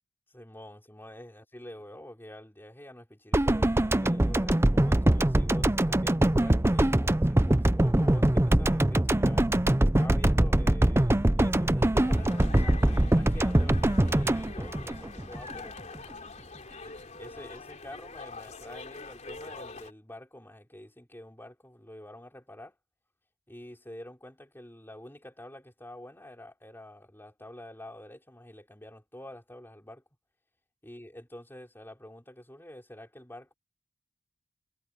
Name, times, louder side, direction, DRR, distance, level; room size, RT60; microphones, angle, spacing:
voice 1, 0.3-15.8 16.7-22.8 23.5-30.0 30.8-33.5, left 1 dB, 10° left, 4.0 m, -47 dB
sound 1, 3.3-15.5 15.8-16.0, right 1 dB, 15° right, 0.6 m, -23 dB
sound 2, 12.0-19.9, left 3 dB, 35° left, 3.6 m, -44 dB
head